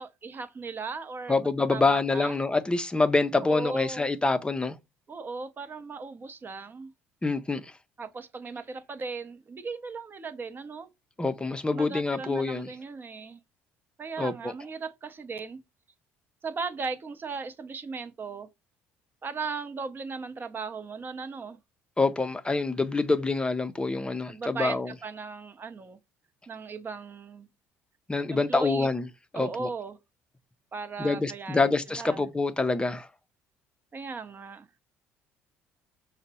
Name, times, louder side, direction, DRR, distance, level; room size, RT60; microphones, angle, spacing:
voice 1, 0.0-2.4 3.4-4.1 5.1-6.9 8.0-10.9 11.7-13.4 14.0-15.6 16.4-18.5 19.2-21.6 24.3-26.0 26.5-27.5 28.3-28.9 29.3-30.0 30.7-32.2 33.9-34.7, right 4 dB, 35° right, 0.7 m, -37 dB
voice 2, 1.3-4.7 7.2-7.7 11.2-12.7 14.2-14.5 22.0-24.9 28.1-29.1 29.3-29.7 31.0-33.1, left 3 dB, 15° left, 0.5 m, -26 dB
5.0 x 2.1 x 4.1 m
hypercardioid pair, 65°, 6 cm